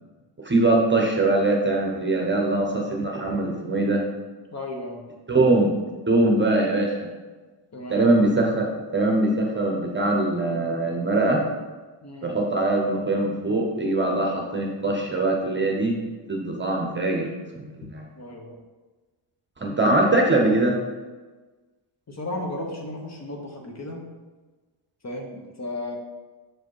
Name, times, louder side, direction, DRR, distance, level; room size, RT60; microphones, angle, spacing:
voice 1, 0.4-4.0 5.3-5.7 6.1-7.1 7.9-11.4 12.2-16.0 16.3-17.3 17.8-18.0 19.6-20.8, right 2 dB, 20° right, 0 dB, 0.9 m, -22 dB
voice 2, 4.5-5.0 7.7-8.1 12.0-12.3 18.1-18.6 19.8-19.9 22.1-24.0 25.0-26.0, left 1 dB, 30° left, 1 dB, 1.1 m, -34 dB
6.2 x 5.0 x 4.7 m, 1.3 s
wide cardioid pair, 150°, 50 cm